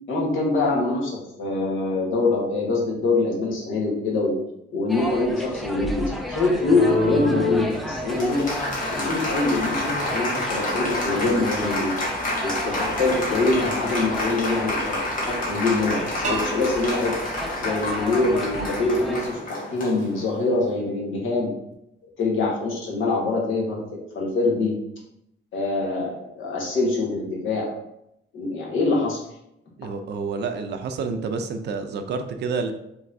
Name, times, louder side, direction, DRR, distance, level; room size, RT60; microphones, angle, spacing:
voice 1, 0.1-4.3 4.7-8.5 8.9-11.9 12.4-17.2 17.6-21.5 22.2-24.7 25.5-27.7 28.3-29.2, left 3 dB, 70° left, -3 dB, 1.4 m, -24 dB
sound 1, 4.9-19.3, equal, ahead, 0.3 m, -34 dB
Applause, 6.5-20.6, left 2 dB, 40° left, 1.4 m, -28 dB
sound 2, 16.2-19.1, right 3 dB, 35° right, 0.8 m, -35 dB
voice 2, 29.8-32.7, right 4 dB, 55° right, 7 dB, 0.5 m, -29 dB
5.5 x 3.3 x 2.6 m, 0.80 s
cardioid pair, 165°, 21 cm